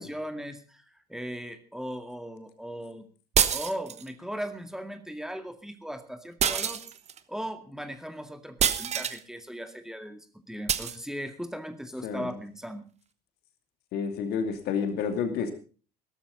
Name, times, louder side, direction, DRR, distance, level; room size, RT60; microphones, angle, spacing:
voice 1, 0.0-3.0 3.5-6.8 7.3-12.9, equal, ahead, 8 dB, 2.1 m, -38 dB
sound 1, 3.3-4.1 6.4-7.2 8.6-9.2 10.7-11.0, right 8 dB, 35° right, 1.1 m, -26 dB
voice 2, 12.0-12.4 13.9-15.5, left 6 dB, 55° left, 8 dB, 2.6 m, -30 dB
17.5 x 13.0 x 4.0 m, 0.37 s
figure-of-eight pair, 60°, 20 cm